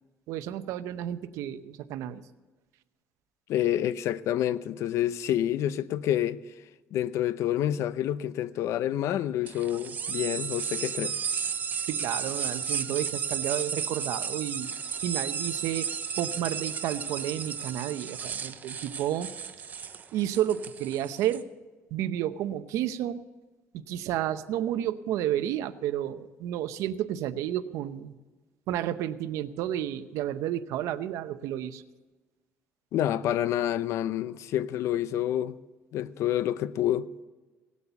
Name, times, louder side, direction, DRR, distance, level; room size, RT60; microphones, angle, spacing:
voice 1, 0.3-2.2 11.9-14.7 15.0-15.9 16.2-19.3 20.1-21.4 21.9-23.2 23.7-28.1 28.7-31.8, right 11 dB, 85° right, 0.7 m, -31 dB
voice 2, 3.5-6.4 6.9-11.1 32.9-35.6 35.9-37.1, left 11 dB, 70° left, 0.6 m, -28 dB
sound 1, 9.5-21.4, right 6 dB, 35° right, 0.7 m, -33 dB
17.5 x 8.4 x 6.9 m
cardioid pair, 140°, 5 cm